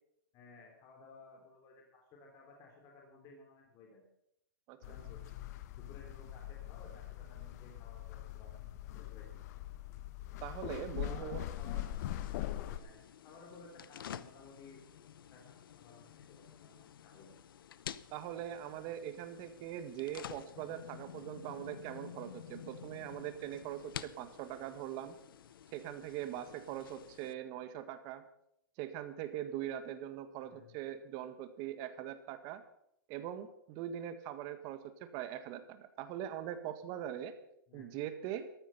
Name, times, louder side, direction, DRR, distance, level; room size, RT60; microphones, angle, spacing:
voice 1, 0.3-4.0 4.9-5.2 5.7-9.4 11.0-12.0 12.7-14.8 15.3-17.4 30.4-30.8 37.7-37.9, left 3 dB, 30° left, 0 dB, 3.2 m, -57 dB
sound 1, 4.8-12.8, left 13 dB, 45° left, 1.0 m, -42 dB
voice 2, 10.4-11.4 18.1-25.2 25.7-28.2 28.8-32.6 33.1-37.4 37.7-38.5, right 11 dB, 35° right, 10 dB, 1.6 m, -42 dB
sound 2, 11.5-27.3, left 9 dB, 75° left, 0.7 m, -51 dB
14.0 x 12.5 x 5.6 m, 0.75 s
hypercardioid pair, 145°, 12 cm